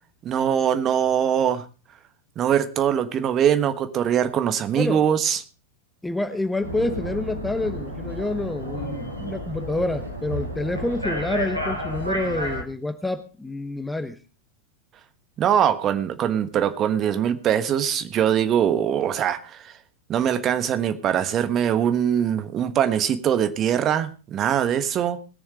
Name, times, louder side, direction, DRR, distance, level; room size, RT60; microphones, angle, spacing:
voice 1, 0.2-1.6 2.4-5.4 15.4-19.7 20.1-25.2, right 9 dB, 30° right, 10 dB, 1.3 m, -22 dB
voice 2, 4.7-5.0 6.0-14.2, left 2 dB, 5° left, 10 dB, 0.9 m, -28 dB
sound 1, 6.6-12.6, equal, 90° left, 2.3 m, -31 dB
20.0 x 7.1 x 5.0 m, 0.35 s
figure-of-eight pair, 90°, 0 cm